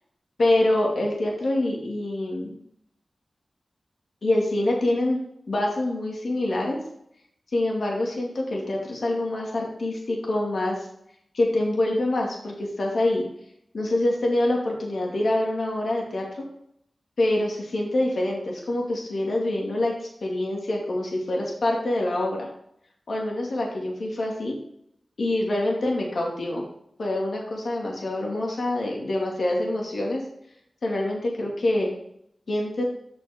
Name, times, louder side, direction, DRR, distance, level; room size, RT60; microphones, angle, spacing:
voice 1, 0.4-2.6 4.2-5.2 5.5-6.8 7.5-10.9 11.3-13.2 13.7-16.4 17.2-22.5 23.1-24.6 25.2-26.7 27.0-30.2 30.8-31.9 32.5-32.8, left 1 dB, 75° left, -1 dB, 2.2 m, -25 dB
8.1 x 6.4 x 3.5 m, 0.72 s
cardioid pair, 50°, 0 cm